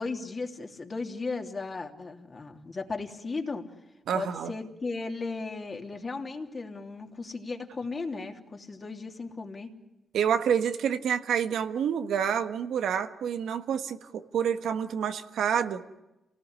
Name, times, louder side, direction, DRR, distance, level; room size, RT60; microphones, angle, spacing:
voice 1, 0.0-3.6 4.1-9.7, left 3 dB, 35° left, 3 dB, 3.2 m, -36 dB
voice 2, 4.1-4.5 10.1-15.8, right 8 dB, 85° right, 8 dB, 1.6 m, -28 dB
28.5 x 19.0 x 9.8 m, 0.98 s
cardioid pair, 95°, 0 cm